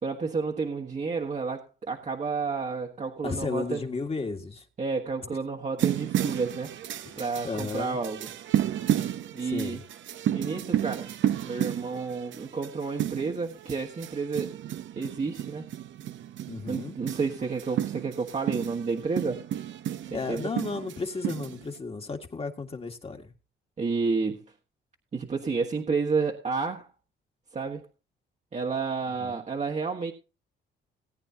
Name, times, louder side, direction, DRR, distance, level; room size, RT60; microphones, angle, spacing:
voice 1, 0.0-3.8 4.8-6.8 7.2-8.3 9.3-9.8 10.3-14.5 15.0-15.7 16.7-19.5 20.1-20.5 23.8-24.4 25.1-26.9 27.5-27.8 28.5-30.1, right 4 dB, 35° right, 1.5 m, -30 dB
voice 2, 3.2-4.7 7.0-8.0 9.4-9.8 16.5-17.0 20.1-23.3 29.2-29.4, left 4 dB, 30° left, 1.8 m, -34 dB
sound 1, 5.8-21.8, right 11 dB, 70° right, 0.9 m, -32 dB
18.5 x 9.0 x 2.8 m
cardioid pair, 90°, 20 cm